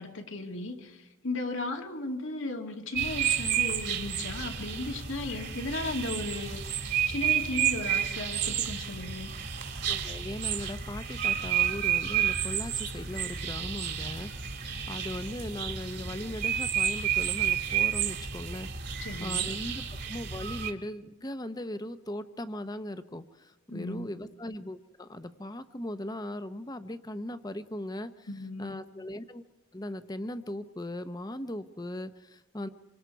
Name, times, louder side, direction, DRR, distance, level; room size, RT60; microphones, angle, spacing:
voice 1, 0.0-6.7 7.1-9.3 19.0-19.5 23.7-24.1 28.3-28.8, left 2 dB, 75° left, 3 dB, 2.4 m, -36 dB
sound 1, 2.9-20.7, right 9 dB, 55° right, 2.0 m, -31 dB
voice 2, 9.8-28.3 28.6-29.4 29.7-32.7, left 1 dB, 20° left, 11 dB, 0.8 m, -39 dB
26.5 x 24.5 x 4.7 m, 1.1 s
head